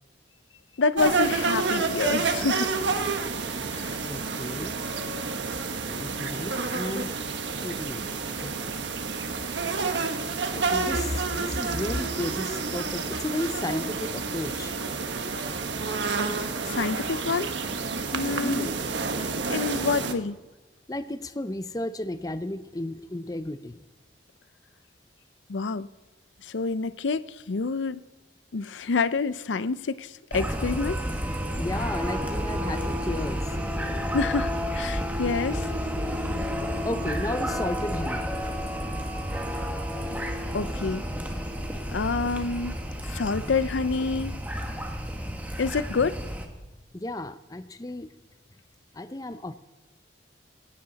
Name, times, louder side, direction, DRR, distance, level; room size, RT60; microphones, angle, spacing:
voice 1, 0.8-2.8 3.7-4.0 16.4-17.5 18.1-18.7 19.5-20.4 25.5-25.9 26.4-28.0 28.5-31.0 34.1-35.7 40.5-41.0 41.9-42.7 43.1-44.4 45.6-46.2, left 4 dB, 80° left, 0.5 m, -27 dB
sound 1, 1.0-20.1, right 4 dB, 75° right, 1.3 m, -29 dB
voice 2, 4.1-4.7 5.9-7.1 7.6-8.8 10.5-14.7 18.4-18.8 20.9-23.8 31.6-33.5 36.9-38.3 46.9-48.1 48.9-49.5, left 1 dB, 20° left, 0.5 m, -33 dB
sound 2, 30.3-46.5, equal, 10° right, 1.4 m, -31 dB
17.5 x 17.5 x 4.1 m
head